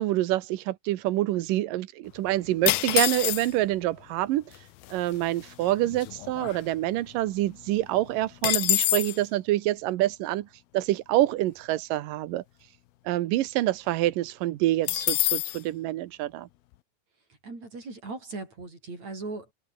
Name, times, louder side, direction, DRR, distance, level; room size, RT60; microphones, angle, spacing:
voice 1, 0.0-4.4 4.9-10.5 10.7-12.4 13.1-16.5, right 15 dB, 75° right, 2.3 m, -26 dB
sound 1, 2.7-3.8 4.6-4.7 4.8-5.2 5.6-7.1 7.4-7.5 7.8-9.2 14.9-15.6, left 17 dB, 75° left, 2.6 m, -26 dB
voice 2, 17.4-19.5, right 3 dB, 40° right, 9.3 m, -38 dB
omnidirectional pair, 4.7 m